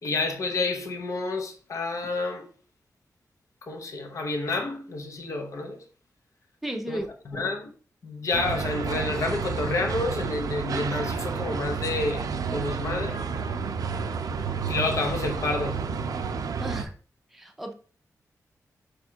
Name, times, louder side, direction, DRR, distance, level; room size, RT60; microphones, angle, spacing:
voice 1, 0.0-2.5 3.7-5.8 6.9-7.7 8.0-13.2 14.7-15.8, left 3 dB, 60° left, 0.8 m, -29 dB
voice 2, 6.6-7.1 16.6-16.9 17.3-17.7, right 1 dB, 5° right, 0.6 m, -33 dB
sound 1, 8.3-16.8, right 5 dB, 75° right, 0.4 m, -30 dB
4.9 x 2.4 x 4.4 m
wide cardioid pair, 150°, 6 cm